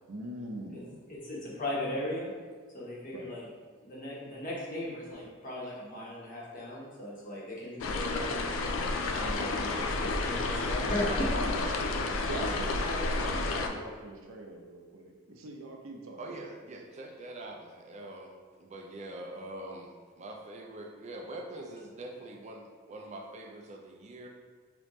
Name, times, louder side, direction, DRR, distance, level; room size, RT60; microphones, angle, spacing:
voice 1, 0.1-1.1 3.1-3.4 11.3-11.8 12.3-16.4, right 1 dB, 85° right, 1 dB, 0.6 m, -42 dB
voice 2, 1.1-2.3 2.7-3.4 3.8-8.5 9.1-11.2, left 1 dB, 45° left, -6 dB, 1.1 m, -37 dB
sound 1, 7.8-13.7, left 3 dB, 80° left, 0.4 m, -31 dB
voice 3, 11.6-12.4 12.8-13.4 16.2-24.3, right 1 dB, 35° right, 1 dB, 0.4 m, -44 dB
3.8 x 3.4 x 3.1 m, 1.6 s
head